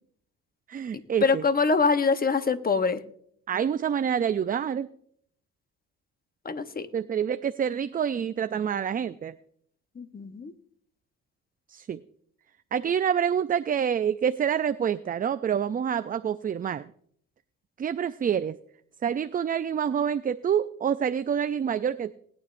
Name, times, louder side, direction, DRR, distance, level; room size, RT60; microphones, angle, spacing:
voice 1, 0.7-1.4 3.5-4.9 6.9-9.4 11.7-12.0 12.7-16.9 17.8-18.6 19.0-22.2, right 8 dB, 30° right, 12 dB, 0.4 m, -27 dB
voice 2, 1.2-3.0 6.4-6.9 10.0-10.5, left 4 dB, 30° left, 11 dB, 1.0 m, -24 dB
20.0 x 9.6 x 2.5 m, 0.65 s
cardioid pair, 90°, 30 cm